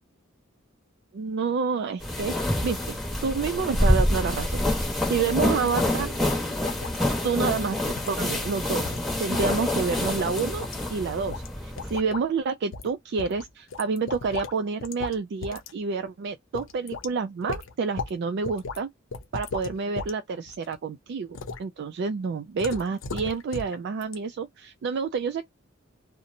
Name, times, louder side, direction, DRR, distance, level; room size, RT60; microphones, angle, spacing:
voice 1, 1.1-6.1 7.2-7.8 8.1-18.9 19.3-25.4, right 5 dB, 60° right, 0.3 m, -29 dB
sound 1, 2.0-12.0, left 1 dB, ahead, 0.9 m, -27 dB
sound 2, 5.7-5.9 6.2-6.3 6.6-7.0 7.4-7.6 8.0-8.2 8.4-8.6 8.8-9.7 10.0-10.8 11.3-11.5 11.8-12.2 12.7-12.9 13.2-14.6 14.8-15.2 15.4-15.7 16.0-16.1 16.5-17.1 17.5-18.1 18.4-18.8 19.1-20.1 20.5-20.8 21.3-21.6 22.6-23.8 24.0-24.1, left 4 dB, 70° left, 0.6 m, -36 dB
2.8 x 2.1 x 2.5 m
head